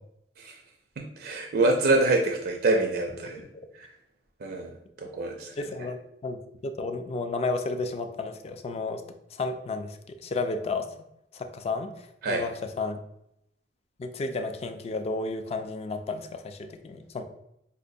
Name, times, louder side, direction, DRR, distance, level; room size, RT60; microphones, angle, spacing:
voice 1, 1.0-3.4 3.7-3.9 4.4-5.5 12.2-12.4, right 2 dB, 60° right, 2 dB, 0.4 m, -26 dB
voice 2, 5.6-9.0 9.3-10.9 11.3-13.0 14.0-17.2, left 3 dB, 35° left, 7 dB, 0.3 m, -32 dB
5.0 x 2.2 x 2.6 m, 0.77 s
head